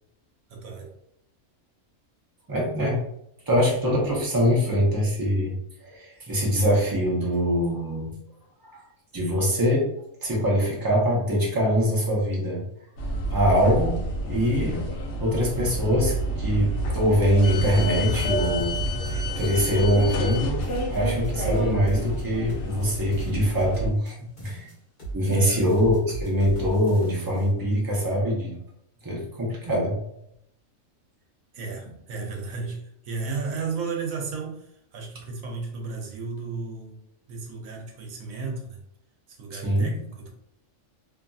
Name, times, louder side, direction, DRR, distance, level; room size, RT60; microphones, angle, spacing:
voice 1, 0.5-0.9 25.3-25.6 31.5-37.0 37.3-38.8 39.3-40.3, right 4 dB, 90° right, 1 dB, 1.1 m, -34 dB
voice 2, 2.5-3.0 3.5-5.5 5.8-8.1 8.6-8.8 9.1-9.9 10.2-12.6 13.3-14.0 14.2-14.8 15.1-18.8 19.4-20.6 20.9-24.7 25.1-28.6 29.0-30.0 39.5-40.0, equal, 20° right, -3 dB, 0.6 m, -23 dB
sound 1, 13.0-23.9, right 1 dB, 65° left, 0.9 m, -29 dB
sound 2, 17.5-19.1 19.4-20.4 20.6-24.1 24.4-25.4 25.6-27.5, right 3 dB, 40° left, 1.1 m, -38 dB
2.8 x 2.5 x 2.3 m, 0.77 s
omnidirectional pair, 1.4 m